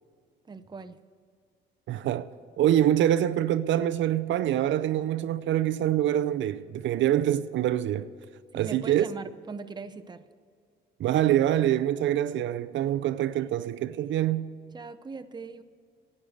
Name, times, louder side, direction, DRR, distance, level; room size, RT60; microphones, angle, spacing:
voice 1, 0.5-1.0 8.5-10.2 14.7-15.6, right 4 dB, 20° right, 0.7 m, -40 dB
voice 2, 1.9-2.3 2.6-8.1 8.5-9.1 11.0-14.4, right 12 dB, 70° right, 0.5 m, -25 dB
11.0 x 8.7 x 7.8 m
cardioid pair, 90°, 20 cm